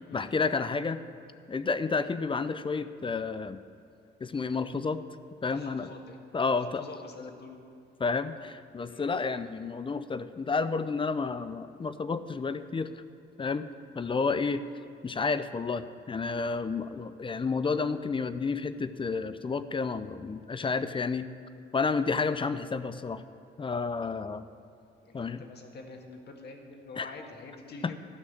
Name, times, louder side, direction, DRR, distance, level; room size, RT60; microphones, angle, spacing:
voice 1, 0.1-1.0 1.5-3.6 4.2-5.0 5.4-5.9 6.3-6.8 8.0-12.9 13.4-13.7 14.0-14.6 15.0-21.3 21.7-23.2 23.6-24.4 25.1-25.4 27.0-27.1, left 4 dB, 25° left, 12 dB, 0.6 m, -30 dB
voice 2, 5.5-6.2 6.6-7.6 8.8-9.1 25.0-28.0, left 3 dB, 55° left, 3 dB, 1.8 m, -46 dB
13.0 x 6.1 x 8.5 m, 2.6 s
cardioid pair, 90°, 20 cm